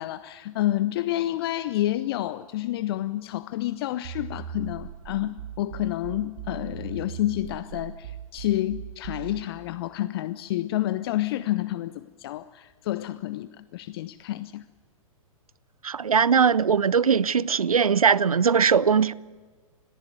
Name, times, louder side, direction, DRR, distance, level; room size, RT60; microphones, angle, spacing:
voice 1, 0.0-14.6, left 14 dB, 45° left, 0.6 m, -29 dB
sound 1, 4.0-9.5, right 8 dB, 50° right, 1.5 m, -39 dB
voice 2, 15.8-19.1, right 6 dB, 80° right, 0.5 m, -20 dB
21.5 x 14.5 x 9.3 m
figure-of-eight pair, 105°, 18 cm